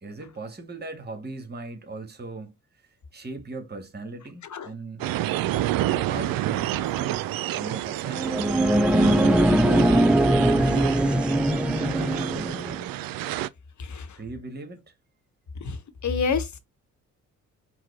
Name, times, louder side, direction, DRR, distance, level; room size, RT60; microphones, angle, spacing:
voice 1, 0.0-2.5 3.1-5.0 6.0-8.5 11.9-13.0 14.2-14.8, right 3 dB, 25° right, 1.6 m, -39 dB
sound 1, 5.0-13.5, right 14 dB, 60° right, 0.5 m, -29 dB
sound 2, 8.1-12.7, right 1 dB, 5° right, 0.5 m, -21 dB
voice 2, 13.8-14.2 15.6-16.6, left 5 dB, 50° left, 1.1 m, -31 dB
4.7 x 2.3 x 4.7 m
hypercardioid pair, 45°, 39 cm